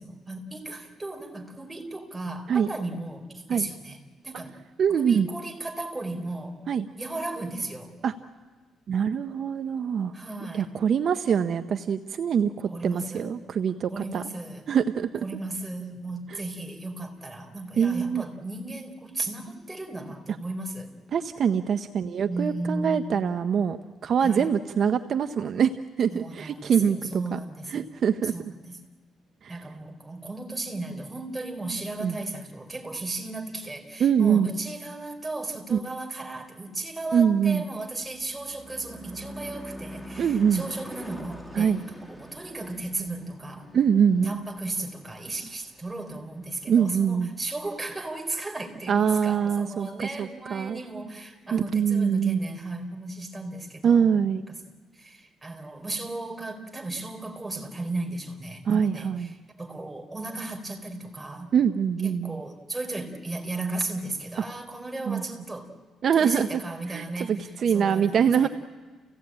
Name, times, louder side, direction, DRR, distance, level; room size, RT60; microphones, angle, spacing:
voice 1, 0.0-4.0 4.2-4.5 4.9-6.6 7.0-7.9 10.1-10.7 12.7-13.3 13.9-14.6 15.2-20.9 22.2-23.1 24.2-24.5 26.1-27.9 28.3-28.8 29.5-43.7 44.2-54.5 54.9-61.5 62.0-65.7 66.1-68.5, right 2 dB, 15° right, 3 dB, 4.2 m, -35 dB
voice 2, 4.8-5.3 6.7-6.9 8.0-8.1 8.9-10.1 10.5-14.2 14.7-15.1 16.3-16.4 17.8-18.2 21.1-23.8 24.0-27.4 27.7-28.5 29.4-29.6 32.0-32.2 34.0-34.5 35.7-35.8 37.1-37.6 40.2-40.7 41.5-41.8 43.7-44.3 46.7-47.3 48.9-50.8 51.5-52.5 53.8-54.4 58.6-59.3 61.5-62.4 65.1-65.2 66.0-66.5 66.9-68.5, right 7 dB, 60° right, 9 dB, 0.8 m, -24 dB
Car passing by / Truck / Engine, 37.6-46.2, equal, 5° left, 1.9 m, -44 dB
29.5 x 16.5 x 8.8 m, 1.3 s
cardioid pair, 90°, 0 cm